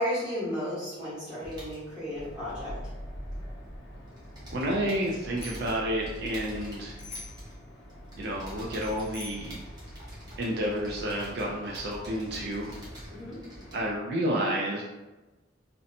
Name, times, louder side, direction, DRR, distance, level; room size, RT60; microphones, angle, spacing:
voice 1, 0.0-2.7 13.2-13.4, equal, 5° right, -12 dB, 1.1 m, -33 dB
sound 1, 1.4-3.7 3.9-14.0, equal, 20° right, 0.6 m, -46 dB
sound 2, 2.1-13.9, equal, 60° left, 0.8 m, -45 dB
voice 2, 4.5-7.0 8.2-9.5 10.4-12.7 13.7-14.8, equal, 55° right, -3 dB, 0.3 m, -30 dB
Bicycle bell, 5.1-5.8 7.0-7.5 8.8-9.5, left 3 dB, 30° left, 0.3 m, -45 dB
2.7 x 2.1 x 2.6 m, 1.1 s
head